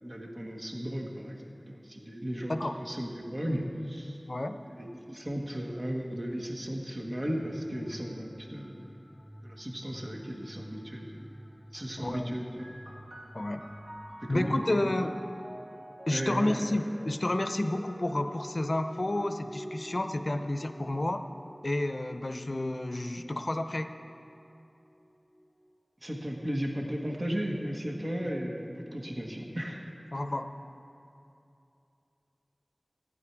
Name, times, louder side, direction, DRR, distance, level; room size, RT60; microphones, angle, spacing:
voice 1, 0.0-3.6 3.9-4.2 4.7-9.0 9.4-11.4 11.7-12.6 14.2-14.8 16.1-16.6 26.0-29.8, equal, 50° right, 0 dB, 1.5 m, -35 dB
voice 2, 4.3-4.6 12.0-12.4 13.3-13.7 14.3-15.2 16.1-21.2 21.6-23.9 30.1-30.7, left 1 dB, 60° left, 8 dB, 0.6 m, -30 dB
sound 1, 7.4-14.8, equal, 10° left, 0.6 m, -51 dB
sound 2, 12.6-25.8 26.7-27.5, equal, 80° right, 1.5 m, -49 dB
15.0 x 9.7 x 4.7 m, 2.7 s
wide cardioid pair, 45°, 0 cm